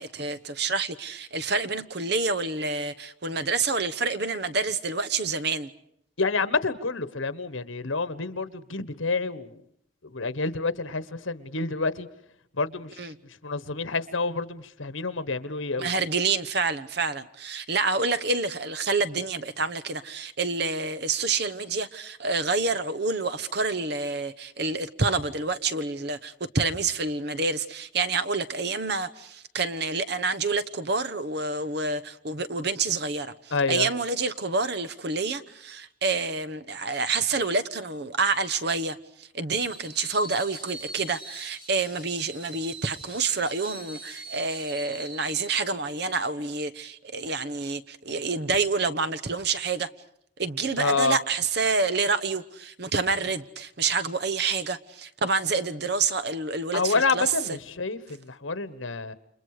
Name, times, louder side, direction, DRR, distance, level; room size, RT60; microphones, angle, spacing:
voice 1, 0.0-5.7 13.0-13.2 15.8-49.9 50.4-57.3, right 4 dB, 55° right, 1.1 m, -28 dB
voice 2, 6.2-9.6 10.0-12.1 12.5-13.1 13.4-15.9 33.5-33.9 50.8-51.2 56.7-59.1, left 4 dB, 80° left, 1.4 m, -28 dB
Screech, 39.5-45.6, right 2 dB, 25° right, 4.4 m, -43 dB
30.0 x 28.0 x 5.0 m
head